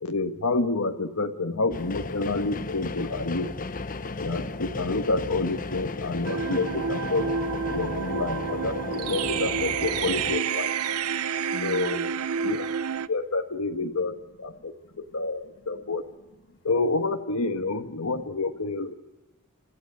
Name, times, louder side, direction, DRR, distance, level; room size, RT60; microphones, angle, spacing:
voice 1, 0.0-3.5 4.2-7.3 7.7-10.7 11.6-12.0 12.4-12.7 13.1-16.1 16.6-18.9, left 3 dB, 90° left, 5 dB, 1.5 m, -28 dB
sound 1, 1.7-10.4, left 3 dB, 40° left, 0.9 m, -34 dB
sound 2, 6.3-13.1, right 7 dB, 90° right, 0.6 m, -29 dB
voice 2, 10.9-11.2 11.5-12.5 14.0-14.1 14.5-15.9 16.5-16.6, left 2 dB, 60° left, 8 dB, 1.6 m, -44 dB
28.0 x 14.5 x 7.8 m, 1.1 s
head